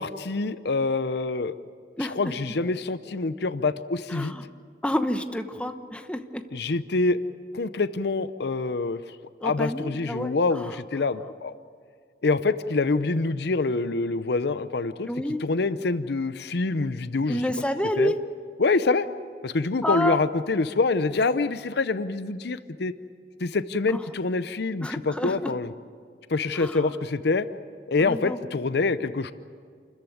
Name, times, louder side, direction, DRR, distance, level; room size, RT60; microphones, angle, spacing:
voice 1, 0.0-1.5 2.0-4.3 6.5-7.2 7.5-9.0 9.4-11.5 12.2-15.1 15.4-17.4 18.0-18.1 18.6-19.1 19.4-22.9 23.4-25.7 26.3-27.5 27.9-29.3, left 3 dB, 65° left, 13 dB, 0.7 m, -26 dB
voice 2, 4.1-4.4 4.8-6.4 9.4-10.8 15.1-15.4 17.3-18.2 19.8-20.2 23.9-24.0 24.8-25.5 26.5-26.9 28.0-28.4, equal, 5° left, 7 dB, 1.0 m, -29 dB
28.5 x 14.5 x 9.3 m, 2.1 s
head